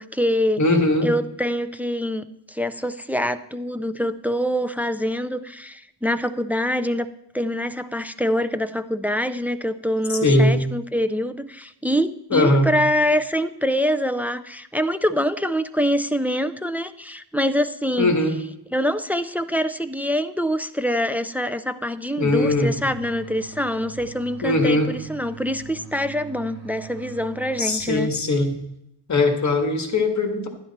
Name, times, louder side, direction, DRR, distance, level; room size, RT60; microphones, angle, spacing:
voice 1, 0.0-0.6 1.0-7.1 7.3-18.1 18.7-28.1, equal, 5° right, 10 dB, 0.3 m, -25 dB
voice 2, 0.6-1.1 10.1-10.6 12.3-12.7 18.0-18.4 22.2-22.7 24.4-24.9 27.6-28.6 29.1-30.5, left 2 dB, 40° left, 5 dB, 1.7 m, -20 dB
sound 1, 22.3-28.4, right 4 dB, 35° right, 2.8 m, -42 dB
11.5 x 10.5 x 4.2 m, 0.78 s
wide cardioid pair, 140°, 44 cm